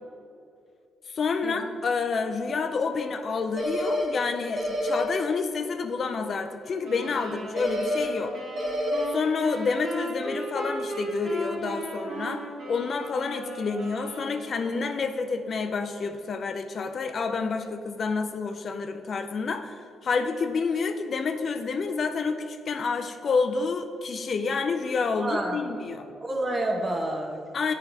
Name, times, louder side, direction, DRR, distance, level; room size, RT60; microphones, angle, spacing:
voice 1, 1.1-8.3 9.1-26.1 27.5-27.7, left 4 dB, 50° left, 7 dB, 0.3 m, -29 dB
sound 1, 3.6-4.0 4.6-5.0 7.6-8.0 8.6-9.0, left 1 dB, 50° right, 1.3 m, -27 dB
sound 2, 6.8-14.8, equal, 70° right, 1.5 m, -36 dB
voice 2, 25.2-25.6 26.0-27.4, right 1 dB, 25° right, 1 dB, 0.9 m, -29 dB
8.0 x 4.5 x 2.7 m, 2.5 s
cardioid pair, 90°, 0 cm